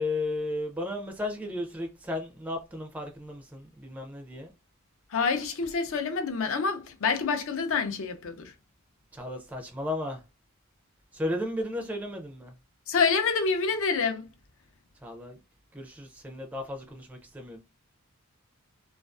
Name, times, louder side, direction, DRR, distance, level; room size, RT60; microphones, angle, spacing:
voice 1, 0.0-4.5 9.1-10.2 11.1-12.5 15.0-15.4 15.7-17.6, left 2 dB, 5° right, 0.4 m, -34 dB
voice 2, 5.1-8.5 12.9-14.3, left 5 dB, 60° left, 0.5 m, -27 dB
2.4 x 2.3 x 2.3 m
head